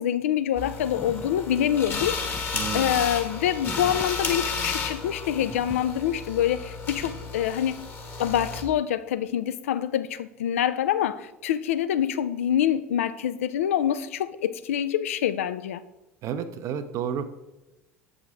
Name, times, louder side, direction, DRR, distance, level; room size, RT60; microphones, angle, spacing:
voice 1, 0.0-7.8 8.2-15.8, left 10 dB, 70° left, 0.4 m, -26 dB
sound 1, 0.5-8.6, left 5 dB, 30° left, 1.2 m, -32 dB
sound 2, 0.8-5.2 5.4-6.2, left 1 dB, 5° left, 0.4 m, -43 dB
voice 2, 2.5-3.0 16.2-17.3, right 8 dB, 45° right, 0.5 m, -31 dB
7.3 x 5.0 x 3.8 m
figure-of-eight pair, 65°, 7 cm